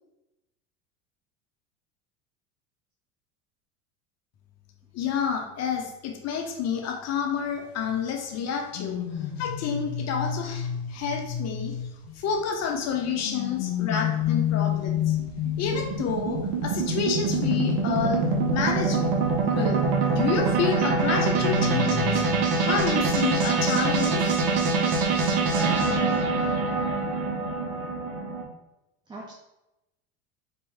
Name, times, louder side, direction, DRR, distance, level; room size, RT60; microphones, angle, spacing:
voice 1, 4.9-9.0 9.4-11.7 12.1-15.2 15.6-18.2 18.5-19.0 19.4-19.8 20.1-22.2 22.6-24.2, left 6 dB, 40° left, 3 dB, 0.8 m, -29 dB
sound 1, 8.7-12.4 13.0-16.2 17.3-22.5 22.8-23.0, left 6 dB, 55° left, 1.3 m, -30 dB
voice 2, 13.1-13.2 28.4-28.5 29.1-29.3, right 2 dB, 10° right, -1 dB, 0.4 m, -43 dB
sound 2, 14.2-28.4, right 4 dB, 60° right, 1.1 m, -25 dB
4.4 x 2.9 x 3.5 m, 0.93 s
hypercardioid pair, 95°, 42 cm